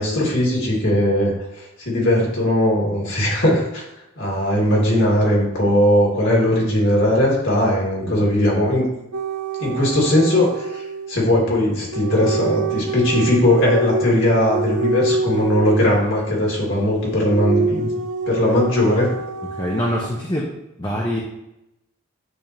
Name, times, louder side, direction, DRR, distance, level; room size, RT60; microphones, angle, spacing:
voice 1, 0.0-3.8 4.2-8.8 9.6-17.9 18.3-19.1, left 1 dB, 60° left, -4 dB, 2.1 m, -19 dB
sound 1, 9.1-11.1 11.9-20.1, right 3 dB, 85° right, 0.5 m, -26 dB
voice 2, 19.5-20.5 20.8-21.2, equal, 20° left, -3 dB, 0.7 m, -24 dB
9.0 x 3.5 x 3.0 m, 0.88 s
head